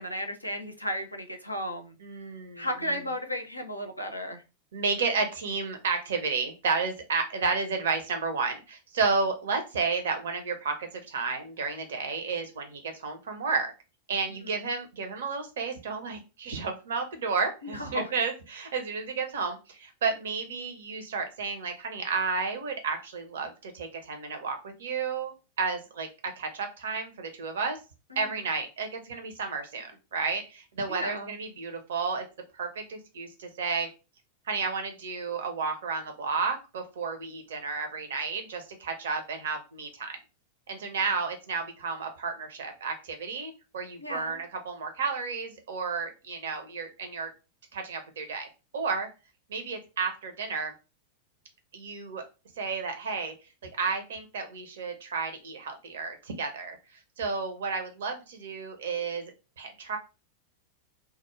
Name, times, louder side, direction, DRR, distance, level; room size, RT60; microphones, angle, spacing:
voice 1, 0.0-1.9 2.6-4.4 14.3-14.6 17.7-18.1 28.1-28.3 30.9-31.3 44.0-44.4, equal, 90° left, 0.5 m, -34 dB
voice 2, 2.0-3.0 4.7-13.7 14.1-26.1 26.4-27.8 28.2-32.2 32.5-33.9 34.5-40.2 40.7-47.3 47.7-48.5 48.7-49.1 49.5-50.7 51.7-52.2 52.6-53.3 53.8-56.8 57.2-59.3 59.6-60.0, right 4 dB, 60° right, 0.6 m, -32 dB
2.3 x 2.0 x 3.0 m
figure-of-eight pair, 90°, 0 cm